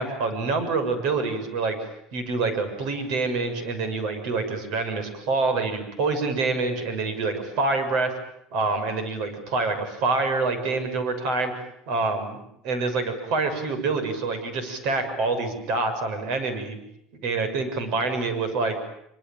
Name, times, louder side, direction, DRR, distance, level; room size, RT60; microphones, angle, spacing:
voice 1, 0.0-1.8 2.1-8.1 8.5-11.5 11.9-16.8 17.2-18.7, right 3 dB, 60° right, 9 dB, 6.9 m, -26 dB
26.0 x 25.0 x 9.1 m, 0.76 s
cardioid pair, 155°, 0 cm